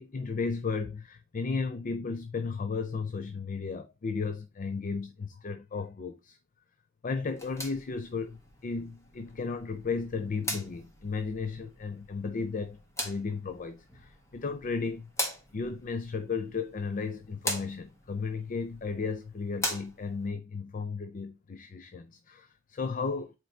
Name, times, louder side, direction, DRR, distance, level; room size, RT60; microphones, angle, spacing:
voice 1, 0.0-6.4 7.0-15.1 15.5-23.3, left 4 dB, 40° left, 0.5 m, -34 dB
sound 1, 7.2-20.3, left 1 dB, 15° left, 1.5 m, -41 dB
7.7 x 4.5 x 3.2 m
head